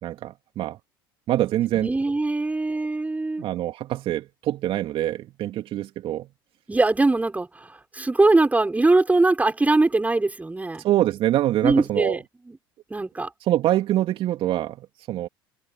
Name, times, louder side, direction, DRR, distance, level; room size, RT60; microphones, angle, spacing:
voice 1, 0.0-0.8 1.3-1.9 3.4-6.3 10.8-12.2 13.4-15.3, right 13 dB, 50° right, 2.5 m, -25 dB
voice 2, 1.7-3.4 6.7-7.5 7.9-10.8 11.6-12.6 12.9-13.3, right 2 dB, 15° right, 5.8 m, -21 dB
hypercardioid pair, 70°, 12 cm